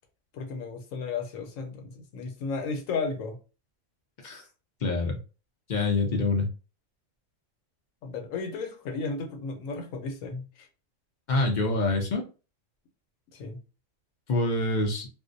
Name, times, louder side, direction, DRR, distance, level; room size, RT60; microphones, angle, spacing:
voice 1, 0.3-3.4 8.0-10.7 13.3-13.6, left 4 dB, 85° left, 1.0 m, -34 dB
voice 2, 4.8-5.2 5.7-6.5 11.3-12.3 14.3-15.1, left 2 dB, 55° left, 0.5 m, -26 dB
2.5 x 2.0 x 2.5 m
omnidirectional pair, 1.4 m